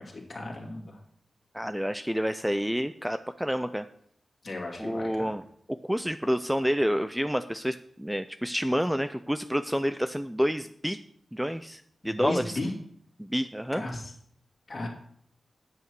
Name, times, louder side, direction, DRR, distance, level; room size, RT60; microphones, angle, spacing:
voice 1, 0.1-1.0 4.4-5.4 12.0-12.7 13.7-14.1 14.7-14.9, left 2 dB, 40° left, -1 dB, 2.5 m, -34 dB
voice 2, 1.5-3.9 4.8-5.4 5.7-11.0 11.3-12.6 13.2-13.8, equal, 5° right, 10 dB, 0.3 m, -29 dB
9.7 x 8.1 x 4.6 m, 0.65 s
wide cardioid pair, 150°, 0 cm